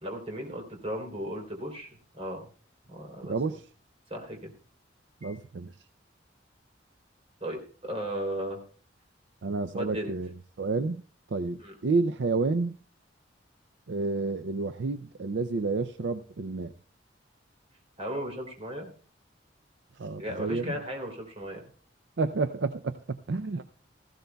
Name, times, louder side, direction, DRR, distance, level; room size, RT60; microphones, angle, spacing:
voice 1, 0.0-2.5 2.9-3.3 4.1-4.5 5.2-5.4 7.4-8.6 9.7-10.1 11.6-11.7 18.0-18.9 20.2-21.6, equal, 35° right, 2 dB, 3.3 m, -36 dB
voice 2, 3.3-3.6 5.2-5.7 9.4-11.0 11.3-12.7 13.9-16.7 20.0-20.8 22.2-23.6, right 3 dB, 70° right, 10 dB, 0.5 m, -30 dB
16.5 x 15.0 x 2.3 m, 0.41 s
head